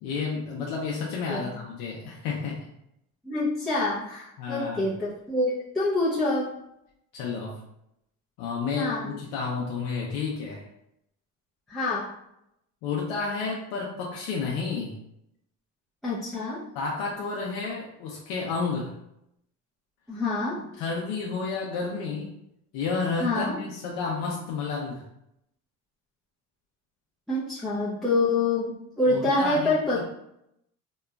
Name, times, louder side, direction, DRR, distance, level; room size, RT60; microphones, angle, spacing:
voice 1, 0.0-2.7 4.4-4.9 7.1-7.6 8.4-10.7 12.8-15.0 16.7-18.9 20.8-22.3 22.7-25.0 29.1-30.0, left 4 dB, 85° left, -2 dB, 0.6 m, -31 dB
voice 2, 3.2-6.5 8.7-9.1 11.7-12.1 16.0-16.6 20.1-20.7 23.2-23.6 27.3-30.0, left 2 dB, ahead, -10 dB, 0.6 m, -26 dB
2.9 x 2.2 x 2.3 m, 0.79 s
cardioid pair, 105°, 35 cm